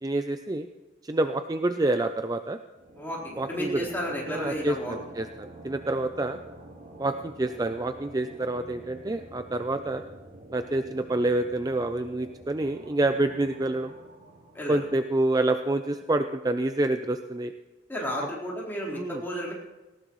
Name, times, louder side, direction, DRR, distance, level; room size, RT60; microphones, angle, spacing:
voice 1, 0.0-0.7 1.0-2.6 3.4-3.9 4.3-6.4 7.0-10.0 10.5-13.9 14.7-17.5 18.9-19.2, right 2 dB, 20° right, 8 dB, 0.5 m, -27 dB
sound 1, 2.7-15.9, right 1 dB, 50° right, 1.7 m, -47 dB
voice 2, 3.0-4.9 14.5-14.8 17.9-19.5, equal, 10° left, -4 dB, 4.1 m, -32 dB
19.0 x 18.0 x 3.1 m, 1.2 s
head